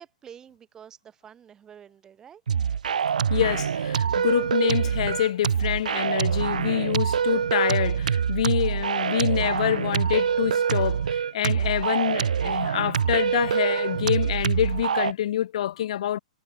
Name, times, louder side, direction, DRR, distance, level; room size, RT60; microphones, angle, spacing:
voice 1, 0.0-2.4, right 8 dB, 15° right, 1.9 m, -48 dB
sound 1, 2.5-15.1, right 7 dB, 85° right, 0.6 m, -25 dB
voice 2, 3.3-16.2, left 11 dB, 60° left, 0.5 m, -26 dB
hypercardioid pair, 150°, 4 cm